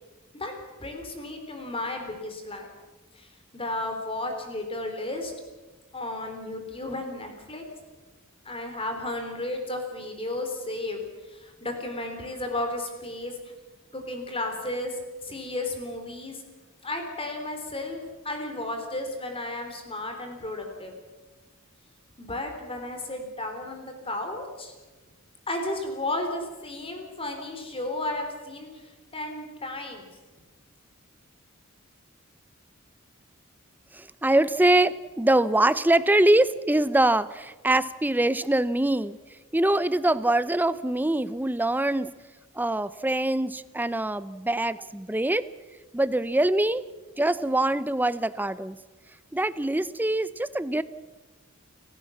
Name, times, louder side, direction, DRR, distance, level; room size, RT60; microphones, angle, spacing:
voice 1, 0.8-2.7 3.1-5.3 5.9-7.6 8.5-11.0 11.3-13.5 13.9-16.4 16.8-18.0 18.2-20.9 22.2-24.7 25.5-30.1, left 2 dB, 25° left, 4 dB, 3.8 m, -33 dB
voice 2, 33.9-39.2 39.5-42.1 42.6-45.5 45.9-46.8 47.2-48.8 49.3-50.8, right 1 dB, 10° right, 15 dB, 0.6 m, -23 dB
29.5 x 15.5 x 7.2 m, 1.2 s
head